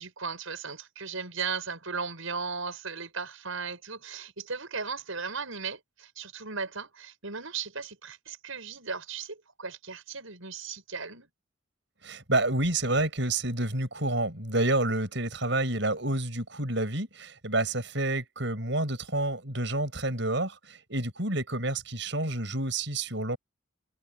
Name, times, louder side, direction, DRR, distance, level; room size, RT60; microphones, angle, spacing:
voice 1, 0.0-11.3, right 5 dB, 85° right, 6.4 m, -36 dB
voice 2, 12.0-23.4, right 2 dB, 60° right, 7.4 m, -29 dB
head